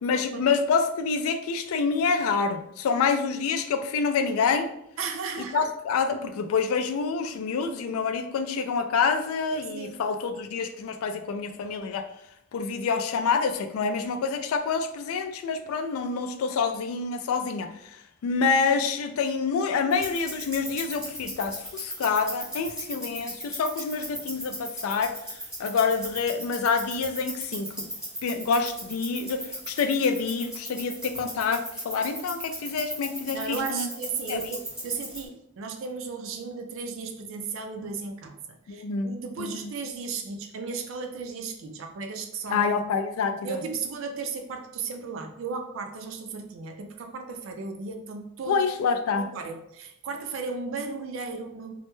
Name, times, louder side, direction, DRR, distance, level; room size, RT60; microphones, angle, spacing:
voice 1, 0.0-4.7 5.5-12.1 12.5-25.1 25.6-27.9 28.2-33.9 34.3-34.4 38.7-39.7 42.5-43.6 48.5-49.3, left 5 dB, 80° left, 7 dB, 0.3 m, -27 dB
voice 2, 5.0-5.7 9.7-10.0 33.3-42.6 43.4-48.6 49.3-51.7, right 4 dB, 65° right, 5 dB, 0.3 m, -35 dB
sound 1, 19.9-35.2, equal, 5° right, 0.8 m, -38 dB
2.2 x 2.0 x 3.0 m, 0.76 s
head